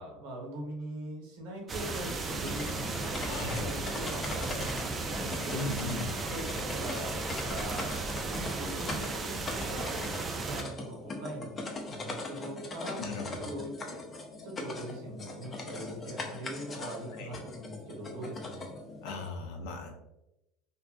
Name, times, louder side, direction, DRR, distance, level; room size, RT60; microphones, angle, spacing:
voice 1, 0.0-5.6 6.2-7.9 8.3-11.5 11.9-13.0 13.4-14.0 14.4-18.7, right 1 dB, 75° right, -1 dB, 0.8 m, -42 dB
sound 1, 1.7-10.6, right 3 dB, 30° right, 0.4 m, -35 dB
sound 2, 2.3-19.3, left 2 dB, 30° left, 0.5 m, -41 dB
voice 2, 3.2-3.7 5.5-6.2 13.0-13.5 16.7-17.4 19.0-20.0, left 3 dB, 75° left, 3 dB, 0.6 m, -38 dB
2.6 x 2.5 x 2.3 m, 0.91 s
supercardioid pair, 100°, 0 cm